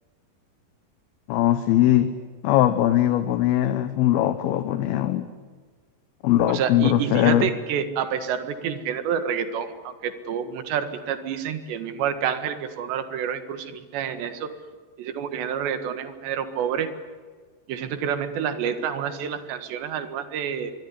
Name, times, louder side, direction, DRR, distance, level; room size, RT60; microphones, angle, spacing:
voice 1, 1.3-2.1 2.4-5.3 6.2-7.5, left 12 dB, 70° left, 11 dB, 2.7 m, -20 dB
voice 2, 6.5-14.5 15.0-16.9 17.7-20.7, right 8 dB, 85° right, 10 dB, 3.9 m, -28 dB
24.5 x 23.0 x 9.8 m, 1.5 s
omnidirectional pair, 4.9 m